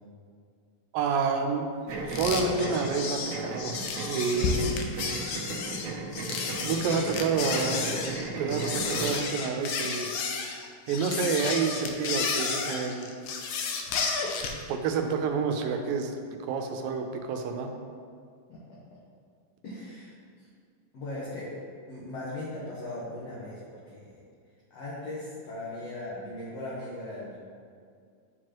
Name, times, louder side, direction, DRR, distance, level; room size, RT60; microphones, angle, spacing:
voice 1, 0.9-1.7 2.1-4.6 6.6-7.9 8.4-10.1 10.9-13.1 14.7-16.2 16.4-17.7, right 5 dB, 90° right, 4 dB, 2.4 m, -29 dB
sound 1, 1.9-9.2, right 3 dB, 70° right, 2.1 m, -36 dB
sound 2, 2.1-14.6, left 5 dB, 80° left, 1.9 m, -32 dB
voice 2, 18.5-19.0 19.6-20.1 20.4-20.5 20.9-21.5 21.9-24.1 24.7-27.4, left 1 dB, 60° left, -8 dB, 2.0 m, -38 dB
11.5 x 4.7 x 3.0 m, 2.2 s
omnidirectional pair, 3.9 m